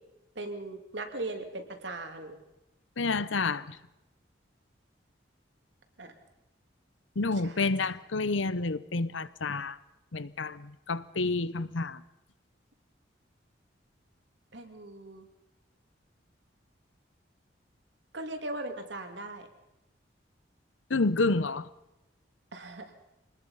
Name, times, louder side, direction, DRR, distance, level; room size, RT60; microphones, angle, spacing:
voice 1, 0.4-2.4 6.0-6.1 7.4-7.7 14.5-15.3 18.1-19.5 22.5-22.8, right 2 dB, 70° right, 2.7 m, -39 dB
voice 2, 3.0-3.8 7.2-9.8 10.1-12.0 20.9-21.7, left 3 dB, 90° left, 0.9 m, -29 dB
25.0 x 19.5 x 5.7 m
head